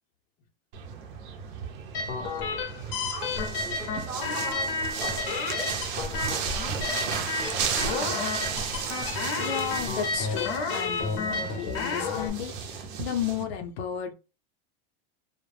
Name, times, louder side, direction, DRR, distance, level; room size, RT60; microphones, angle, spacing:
sound 1, 0.7-13.4, right 6 dB, 55° right, 0.6 m, -34 dB
sound 2, 1.9-12.3, left 4 dB, 40° left, 0.6 m, -31 dB
voice 1, 3.1-8.1, right 1 dB, 10° right, 0.8 m, -42 dB
voice 2, 9.4-14.1, left 8 dB, 85° left, 0.6 m, -33 dB
2.1 x 2.0 x 3.1 m
supercardioid pair, 140°, 31 cm